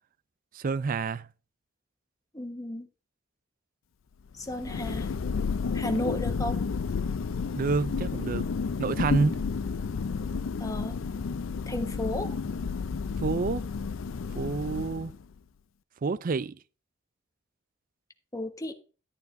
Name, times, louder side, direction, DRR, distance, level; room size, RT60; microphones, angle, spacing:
voice 1, 0.5-1.3 7.6-8.5 8.8-9.4 13.2-13.6 14.4-15.1 16.0-16.6, right 4 dB, 45° right, 0.4 m, -28 dB
voice 2, 2.3-2.9 4.3-5.1 5.7-6.6 9.2-9.4 10.6-10.9 11.7-12.3 18.3-18.7, left 1 dB, 20° left, 1.2 m, -33 dB
Thunder, 4.3-15.3, left 5 dB, 85° left, 0.5 m, -31 dB
12.0 x 10.5 x 2.6 m
head